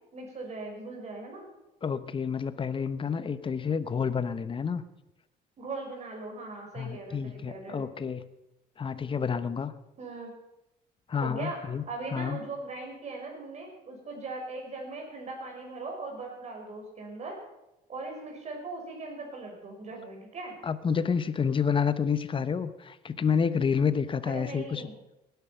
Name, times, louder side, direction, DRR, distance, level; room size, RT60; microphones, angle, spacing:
voice 1, 0.1-1.5 5.6-7.8 10.0-10.3 11.2-17.4 17.9-20.6 24.2-25.0, right 3 dB, 40° right, 1 dB, 5.9 m, -39 dB
voice 2, 1.8-4.8 6.7-8.3 8.8-9.7 11.1-11.8 12.1-12.4 20.6-24.9, left 6 dB, 30° left, 13 dB, 1.0 m, -29 dB
18.5 x 10.5 x 5.9 m, 0.94 s
cardioid pair, 110°, 17 cm